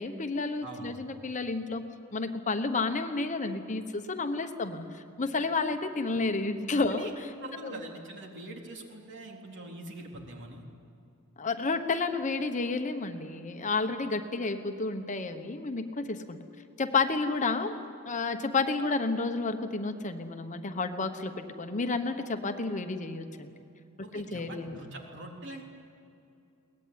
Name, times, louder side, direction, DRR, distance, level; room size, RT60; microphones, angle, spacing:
voice 1, 0.0-1.8 2.1-7.3 7.6-7.8 11.4-16.4 16.8-17.8 18.1-23.5 24.1-24.8, left 3 dB, 35° left, 7 dB, 1.1 m, -31 dB
voice 2, 0.6-1.0 6.9-7.1 7.4-10.6 24.0-25.6, right 1 dB, 55° right, 1 dB, 3.6 m, -43 dB
22.5 x 19.0 x 9.6 m, 2.6 s
head